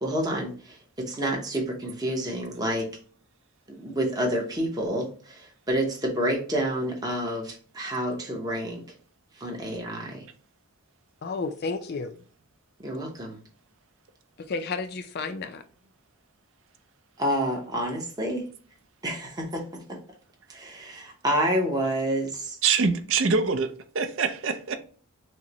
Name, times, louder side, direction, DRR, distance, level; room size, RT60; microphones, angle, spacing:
voice 1, 0.0-2.9 3.7-8.8 9.3-10.3 12.8-13.4 17.2-18.5 19.0-19.6 20.5-22.6, right 1 dB, 15° right, 0.8 m, -29 dB
voice 2, 11.2-12.1 14.4-15.6, left 4 dB, 45° left, 0.4 m, -32 dB
voice 3, 22.6-24.7, right 5 dB, 55° right, 0.5 m, -24 dB
6.2 x 2.1 x 2.9 m
head